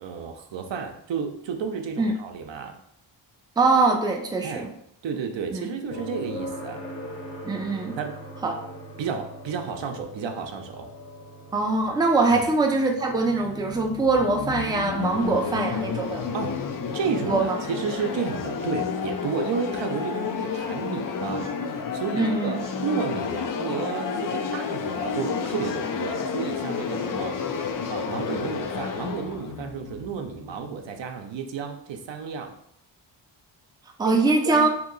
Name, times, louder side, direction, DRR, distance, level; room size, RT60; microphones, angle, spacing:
voice 1, 0.0-2.7 4.4-4.7 5.0-6.8 8.0-8.1 9.0-10.9 12.3-12.4 16.3-16.6 16.9-27.4 27.9-32.5 34.0-34.7, right 6 dB, 70° right, 4 dB, 0.6 m, -32 dB
voice 2, 3.6-4.7 5.5-5.7 7.4-8.0 8.4-8.6 11.5-16.2 17.3-17.6 22.1-22.6 34.0-34.7, right 3 dB, 10° right, 1 dB, 0.5 m, -23 dB
sound 1, 5.9-19.8 22.0-22.1, equal, 30° left, 0.8 m, -43 dB
sound 2, 13.1-30.9, left 6 dB, 45° left, 0.4 m, -31 dB
2.8 x 2.7 x 3.9 m, 0.72 s
cardioid pair, 90°, 46 cm